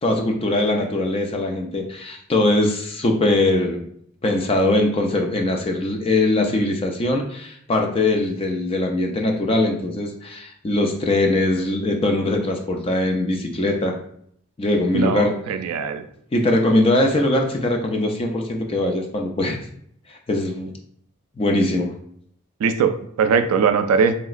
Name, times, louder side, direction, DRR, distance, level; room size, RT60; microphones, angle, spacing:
voice 1, 0.0-3.8 4.2-14.0 14.6-15.3 16.3-19.6 20.1-20.7 21.4-21.9, left 2 dB, 25° left, 2 dB, 0.3 m, -21 dB
voice 2, 14.9-16.0 22.6-24.2, right 6 dB, 80° right, 9 dB, 0.3 m, -20 dB
3.1 x 2.9 x 2.4 m, 0.68 s
head